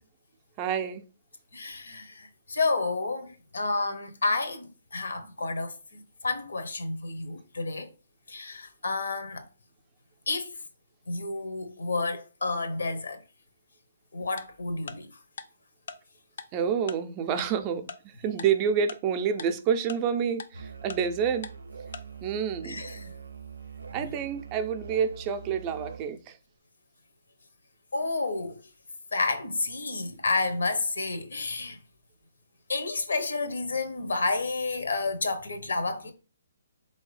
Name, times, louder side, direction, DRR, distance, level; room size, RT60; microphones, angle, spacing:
voice 1, 0.6-1.0 16.5-21.5 22.2-22.8 23.9-26.4, right 7 dB, 30° right, 0.4 m, -28 dB
voice 2, 1.5-7.9 8.3-9.5 10.3-10.5 11.1-13.2 14.1-15.1 22.6-23.1 27.9-28.6 29.1-31.8 32.7-36.1, left 3 dB, 80° left, 0.8 m, -30 dB
Tick-tock, 14.4-14.5 14.9-15.0 15.4-15.5 15.9-16.0 16.4-16.5 16.9-17.0 17.4-17.5 17.9-18.0 18.4-18.5 18.9-19.0 19.4-19.5 19.9-20.0 20.4-20.5 20.9-21.0 21.4-21.5 21.9-22.0, left 5 dB, 60° left, 0.4 m, -38 dB
Musical instrument, 20.5-26.1, right 6 dB, 85° right, 0.4 m, -43 dB
3.7 x 2.7 x 3.2 m
hypercardioid pair, 145°, 0 cm